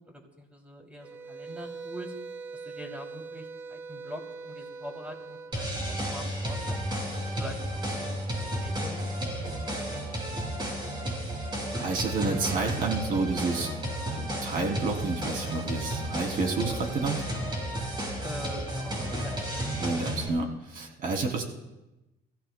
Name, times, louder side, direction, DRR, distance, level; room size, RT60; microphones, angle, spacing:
voice 1, 0.0-2.1 2.5-10.2 18.2-19.4, equal, 10° right, 2 dB, 2.8 m, -44 dB
sound 1, 1.0-5.6, right 4 dB, 80° right, 1.5 m, -42 dB
sound 2, 5.5-20.3, equal, 25° right, 6.1 m, -32 dB
voice 2, 11.8-17.3 19.8-21.4, right 3 dB, 55° right, 2 dB, 2.9 m, -30 dB
30.0 x 15.0 x 2.2 m, 1.0 s
cardioid pair, 110°, 17 cm